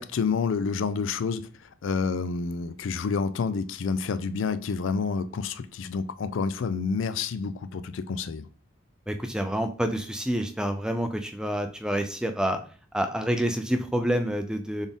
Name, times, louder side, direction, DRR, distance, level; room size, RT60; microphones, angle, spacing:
voice 1, 0.0-8.4, left 5 dB, 70° left, 0.4 m, -29 dB
voice 2, 9.1-12.6 12.9-14.9, equal, 5° right, 0.3 m, -28 dB
4.1 x 3.4 x 3.5 m
head